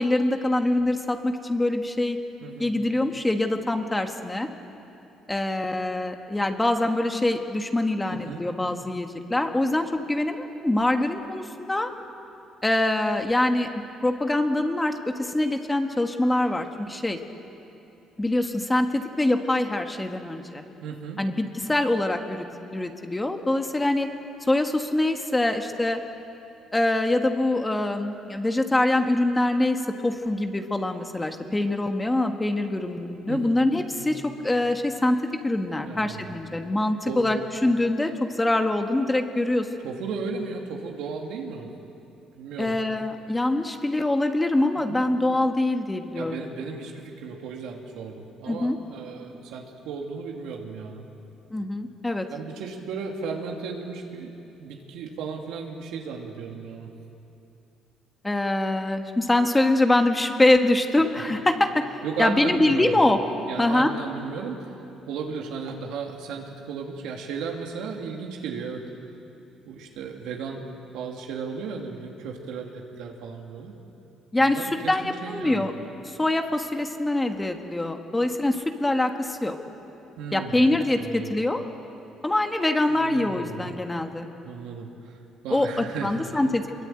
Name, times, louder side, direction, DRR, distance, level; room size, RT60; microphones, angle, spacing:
voice 1, 0.0-2.2 2.6-4.5 5.3-11.9 12.6-13.7 14.0-17.2 18.2-20.6 21.2-22.4 22.7-24.1 24.4-26.0 26.7-35.2 35.4-37.4 37.6-39.7 42.6-46.4 48.5-48.8 51.5-52.3 58.2-61.8 62.2-63.2 63.6-63.9 74.3-75.7 76.0-79.6 80.3-81.6 82.2-84.3 85.5-86.6, left 1 dB, 10° left, 5 dB, 1.5 m, -24 dB
voice 2, 8.1-8.4 20.8-21.2 33.3-33.5 33.9-34.2 35.8-36.4 37.0-37.5 39.8-41.7 42.3-42.8 44.9-45.0 46.2-51.0 52.3-54.3 54.6-56.9 62.0-63.0 63.5-64.8 65.1-68.8 69.6-70.6 70.9-73.7 74.4-75.7 80.2-80.7 81.0-81.3 82.9-83.7 84.4-86.4, right 5 dB, 85° right, 1 dB, 2.6 m, -35 dB
24.5 x 23.0 x 8.9 m, 2.8 s
cardioid pair, 125°, 0 cm